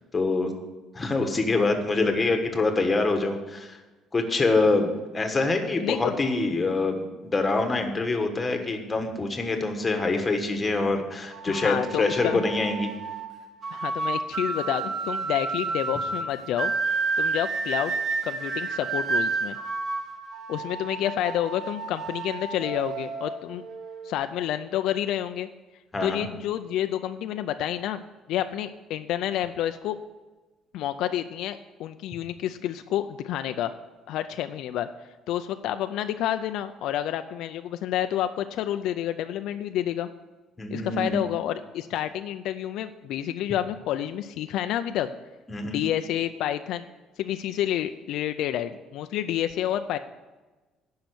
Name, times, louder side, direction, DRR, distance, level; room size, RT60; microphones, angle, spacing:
voice 1, 0.1-0.5 0.9-3.8 4.1-12.9 25.9-26.3 40.6-41.2 45.5-45.8, left 3 dB, 15° left, 5 dB, 1.2 m, -25 dB
voice 2, 5.8-6.1 11.5-12.4 13.7-16.7 17.2-17.9 18.2-19.6 20.5-23.6 24.0-25.5 26.0-28.0 28.3-30.0 30.7-33.7 34.1-34.9 35.3-40.1 40.7-45.1 45.6-46.8 47.2-50.0, left 11 dB, 70° left, 9 dB, 0.4 m, -29 dB
sound 1, 11.3-24.1, right 4 dB, 40° right, 1.0 m, -31 dB
10.5 x 5.7 x 8.0 m, 1.2 s
cardioid pair, 155°, 0 cm